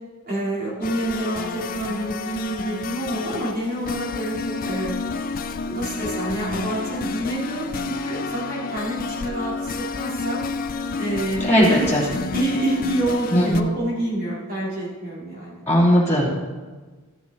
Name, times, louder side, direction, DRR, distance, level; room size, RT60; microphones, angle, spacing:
voice 1, 0.2-4.9 5.6-10.4 11.0-15.6, right 1 dB, 45° right, -6 dB, 3.5 m, -27 dB
sound 1, 0.8-13.6, left 4 dB, 40° left, 0.4 m, -30 dB
voice 2, 11.4-12.0 13.3-13.7 15.7-16.3, equal, 10° left, -10 dB, 2.7 m, -18 dB
14.0 x 7.1 x 4.0 m, 1.4 s
head